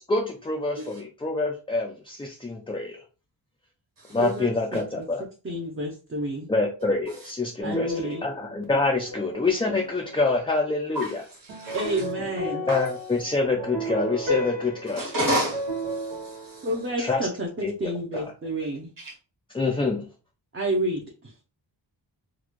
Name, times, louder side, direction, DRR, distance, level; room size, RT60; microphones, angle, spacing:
voice 1, 0.1-3.0 4.1-5.2 6.5-11.2 12.7-15.1 17.0-17.3 17.6-18.2 19.5-20.1, left 3 dB, 15° left, 0.3 m, -26 dB
voice 2, 4.2-5.1 5.4-6.5 7.6-8.2 11.7-12.6 16.6-18.9 20.5-21.3, right 1 dB, 30° right, 0.6 m, -30 dB
sound 1, 7.6-10.7 11.5-17.1, equal, 90° right, 1.2 m, -34 dB
voice 3, 10.9-12.1 12.7-12.9 14.9-16.7 19.0-19.1, equal, 45° right, 1.6 m, -31 dB
3.9 x 2.3 x 3.0 m
wide cardioid pair, 145°, 46 cm